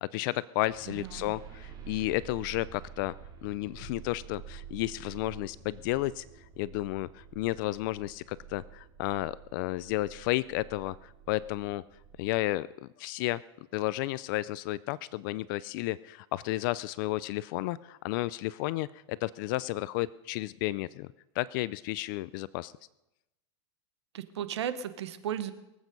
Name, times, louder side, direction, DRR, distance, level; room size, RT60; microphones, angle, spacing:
voice 1, 0.0-3.1 3.4-6.2 6.6-11.8 12.2-13.4 13.7-21.1 21.4-22.7, left 18 dB, 50° left, 19 dB, 0.4 m, -32 dB
sound 1, 0.7-12.4, right 9 dB, 30° right, 2.6 m, -48 dB
voice 2, 0.9-1.3 24.1-25.5, right 9 dB, 90° right, 12 dB, 1.3 m, -35 dB
23.5 x 8.3 x 5.3 m, 0.92 s
supercardioid pair, 140°, 14 cm